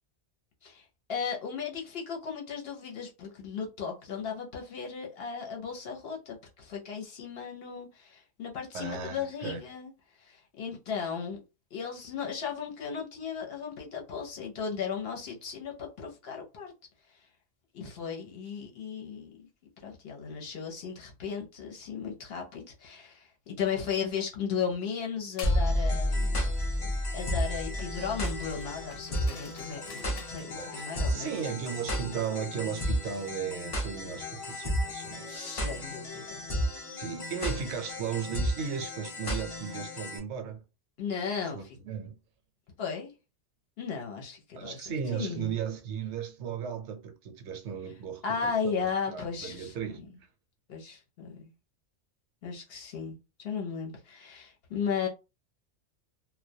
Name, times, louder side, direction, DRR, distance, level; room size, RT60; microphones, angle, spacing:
voice 1, 0.6-9.9 10.2-11.4 11.7-16.7 17.7-19.5 19.8-26.5 27.1-31.3 34.1-34.2 35.3-36.4 41.0-41.7 42.8-43.1 43.8-45.5 48.2-50.1 50.7-51.3 52.4-55.1, left 6 dB, 60° left, 0.8 m, -36 dB
voice 2, 8.7-9.6 30.5-35.4 35.8-35.9 36.9-40.6 41.5-42.2 44.5-50.0, right 7 dB, 75° right, 0.8 m, -36 dB
sound 1, 25.4-25.7 28.2-30.5, left 5 dB, 85° left, 0.9 m, -48 dB
sound 2, 25.4-40.2, equal, 40° left, 0.5 m, -32 dB
2.2 x 2.2 x 2.6 m
omnidirectional pair, 1.2 m